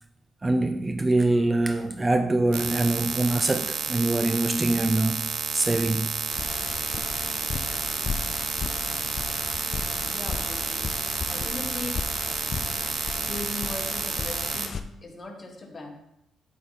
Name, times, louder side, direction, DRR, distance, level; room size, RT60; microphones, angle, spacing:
voice 1, 0.4-5.2 5.5-6.2, right 2 dB, 20° right, 0.4 m, -24 dB
sound 1, 2.5-14.7, right 9 dB, 80° right, 0.5 m, -30 dB
sound 2, 6.3-14.8, left 5 dB, 50° left, 0.4 m, -35 dB
voice 2, 10.0-10.9 11.3-12.0 13.3-15.9, left 2 dB, 30° left, 1.4 m, -39 dB
8.3 x 3.8 x 4.0 m
cardioid pair, 90°, 0 cm